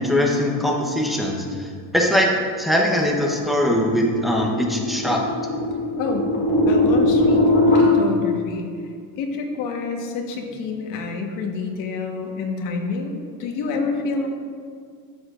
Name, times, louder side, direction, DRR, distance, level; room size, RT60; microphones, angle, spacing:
voice 1, 0.0-1.7 1.9-2.3 2.6-5.2, equal, ahead, -2 dB, 0.9 m, -21 dB
sound 1, 3.1-7.8, left 1 dB, 30° left, 2.2 m, -21 dB
voice 2, 6.0-6.3 6.7-8.7 9.2-14.3, left 4 dB, 60° left, 2 dB, 1.4 m, -28 dB
13.0 x 8.7 x 2.5 m, 2.1 s
cardioid pair, 170°, 36 cm